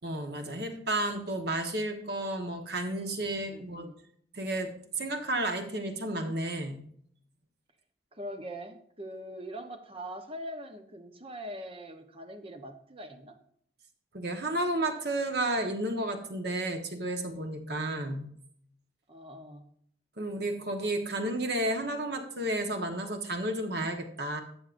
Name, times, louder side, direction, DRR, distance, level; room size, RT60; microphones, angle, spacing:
voice 1, 0.0-3.9 4.3-6.8 14.1-18.2 20.2-24.4, right 1 dB, 60° right, 5 dB, 1.3 m, -32 dB
voice 2, 3.5-4.0 8.1-13.4 19.1-19.7, equal, 30° right, 6 dB, 1.0 m, -42 dB
13.5 x 7.9 x 2.6 m, 0.65 s
head